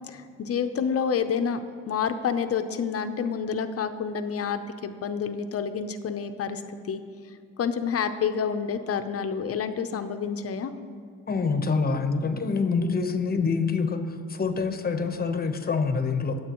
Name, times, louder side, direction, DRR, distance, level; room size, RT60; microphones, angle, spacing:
voice 1, 0.1-1.6 1.9-7.0 7.6-10.7, left 6 dB, 50° left, 8 dB, 0.7 m, -28 dB
voice 2, 11.3-16.4, left 4 dB, 30° left, 7 dB, 1.0 m, -26 dB
20.5 x 7.9 x 3.1 m, 2.4 s
cardioid pair, 90°, 30 cm